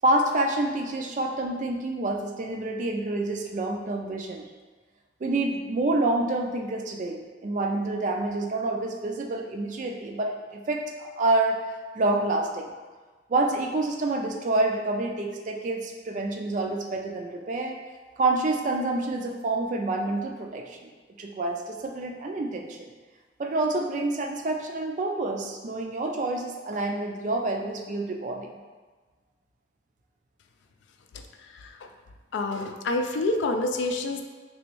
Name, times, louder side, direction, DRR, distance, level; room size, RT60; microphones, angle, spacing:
voice 1, 0.0-4.4 5.2-11.6 12.0-12.7 13.3-17.8 18.2-20.8 21.2-22.9 23.4-28.5, right 2 dB, 40° right, 2 dB, 0.3 m, -27 dB
voice 2, 32.3-34.2, left 2 dB, 75° left, 5 dB, 0.3 m, -27 dB
3.4 x 3.0 x 3.0 m, 1.4 s
head